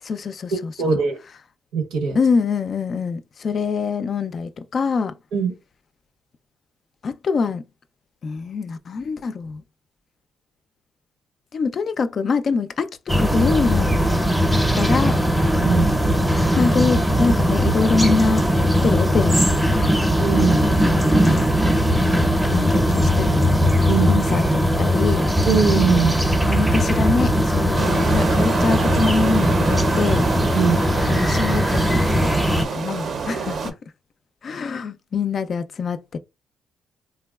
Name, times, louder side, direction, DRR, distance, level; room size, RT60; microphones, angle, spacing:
voice 1, 0.0-0.9 2.2-5.1 7.0-7.6 8.2-9.6 11.5-13.9 14.8-15.2 16.6-18.4 18.8-19.5 19.7-20.0 20.5-21.5 22.1-23.5 23.8-25.3 26.2-30.3 31.1-33.8 34.4-36.2, left 5 dB, 50° left, 0.3 m, -24 dB
voice 2, 0.8-1.2 1.7-2.2 5.3-5.5 15.5-15.9 20.2-20.6 23.9-24.1 25.5-26.2 30.5-30.8 33.3-33.4, right 6 dB, 85° right, 0.8 m, -21 dB
sound 1, 13.1-32.7, equal, 5° right, 0.6 m, -19 dB
sound 2, 27.8-33.7, right 5 dB, 55° right, 0.5 m, -28 dB
3.4 x 2.2 x 2.3 m
cardioid pair, 90°, 0 cm